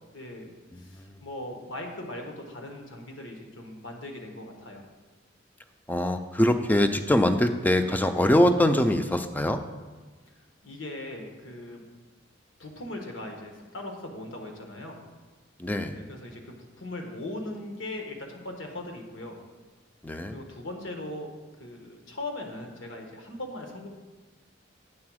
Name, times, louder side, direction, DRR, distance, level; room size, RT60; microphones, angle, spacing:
voice 1, 0.1-4.8 10.3-10.4 10.6-11.8 12.6-15.0 15.9-19.4 20.3-21.3 21.6-23.9, left 1 dB, 85° left, 3 dB, 1.2 m, -39 dB
voice 2, 0.7-1.1 5.9-9.6 15.6-16.0 20.0-20.4, left 1 dB, 10° left, 8 dB, 0.4 m, -23 dB
8.7 x 3.9 x 6.2 m, 1.3 s
head